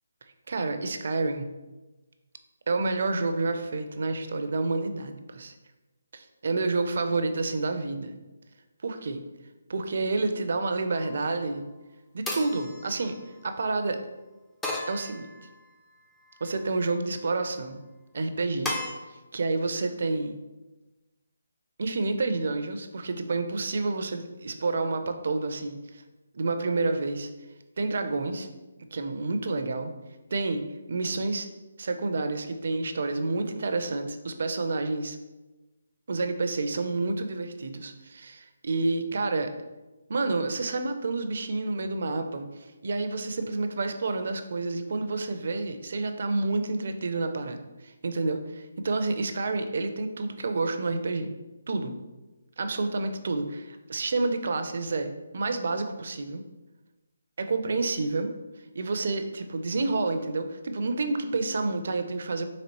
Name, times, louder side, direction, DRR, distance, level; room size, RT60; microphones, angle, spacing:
voice 1, 0.5-1.5 2.7-5.5 6.1-8.2 8.8-9.2 9.7-11.7 12.1-13.2 13.4-14.0 14.9-15.3 16.4-17.8 18.1-18.8 19.1-20.4 21.8-26.0 26.3-27.3 27.8-28.5 28.9-29.9 30.3-30.6 30.9-31.5 31.8-35.2 36.1-39.5 40.1-51.3 51.7-51.9 52.6-56.4 57.4-58.3 58.7-62.4, right 3 dB, 60° right, 7 dB, 0.4 m, -29 dB
sound 1, 10.9-11.4 12.3-13.6 14.6-15.7 16.3-16.9 18.6-18.9, left 2 dB, 5° left, 0.4 m, -36 dB
4.1 x 2.9 x 2.9 m, 1.1 s
hypercardioid pair, 155°, 0 cm